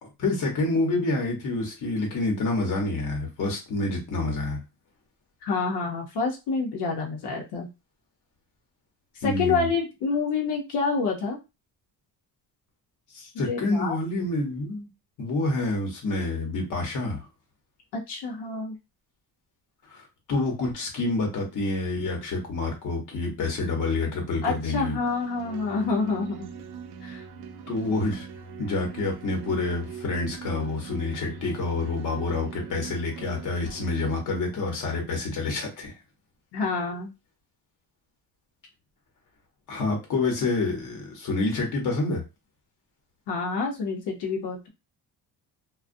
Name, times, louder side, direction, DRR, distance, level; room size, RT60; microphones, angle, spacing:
voice 1, 0.0-4.6 9.2-9.7 13.1-14.9 15.2-17.3 19.9-25.0 27.7-28.3 28.6-35.9 39.7-42.2, left 2 dB, 50° left, 1 dB, 1.0 m, -28 dB
voice 2, 5.4-7.7 9.1-11.4 13.3-14.0 18.1-18.7 24.4-26.5 27.0-27.2 36.5-37.1 43.3-44.7, left 4 dB, 85° left, 0 dB, 0.7 m, -28 dB
sound 1, 25.0-34.2, right 6 dB, 70° right, 0.5 m, -41 dB
2.3 x 2.2 x 2.5 m, 0.26 s
cardioid pair, 165°, 40 cm